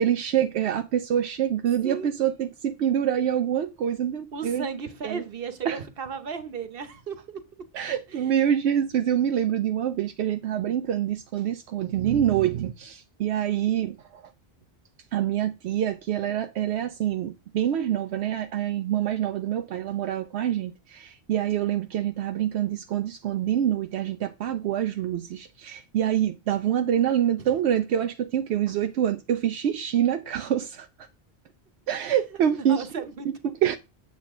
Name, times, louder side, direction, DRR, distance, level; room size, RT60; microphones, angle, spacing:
voice 1, 0.0-4.7 5.0-5.2 5.7-5.8 7.7-14.2 15.1-30.9 31.9-32.8 33.4-33.8, right 10 dB, 80° right, 0.9 m, -26 dB
voice 2, 4.3-7.4 8.1-8.3 27.4-27.5 32.0-32.2 32.5-33.3, right 5 dB, 60° right, 1.2 m, -35 dB
8.4 x 7.4 x 3.6 m
omnidirectional pair, 1.1 m